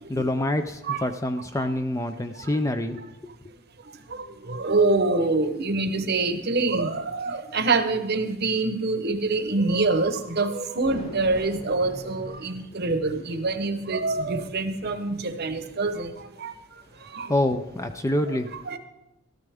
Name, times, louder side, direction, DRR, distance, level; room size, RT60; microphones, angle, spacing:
voice 1, 0.1-3.0 17.3-18.5, left 1 dB, 15° left, 8 dB, 0.5 m, -26 dB
voice 2, 4.1-16.5 17.1-17.3 18.5-18.8, right 3 dB, 45° right, 9 dB, 0.9 m, -25 dB
sound 1, 10.3-15.9, left 1 dB, 35° left, 4.6 m, -43 dB
13.5 x 13.0 x 3.5 m, 0.91 s
head